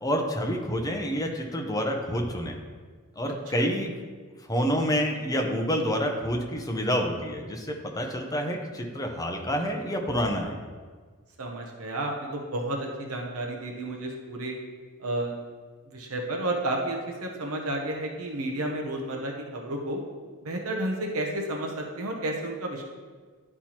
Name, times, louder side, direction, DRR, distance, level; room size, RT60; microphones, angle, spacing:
voice 1, 0.0-2.6 3.2-3.9 4.5-7.7 7.9-10.6, equal, 15° left, 2 dB, 0.7 m, -28 dB
voice 2, 11.4-14.6 15.0-15.3 15.9-20.0 20.4-22.8, right 1 dB, 70° right, 1 dB, 0.8 m, -31 dB
11.0 x 4.3 x 2.9 m, 1.5 s
head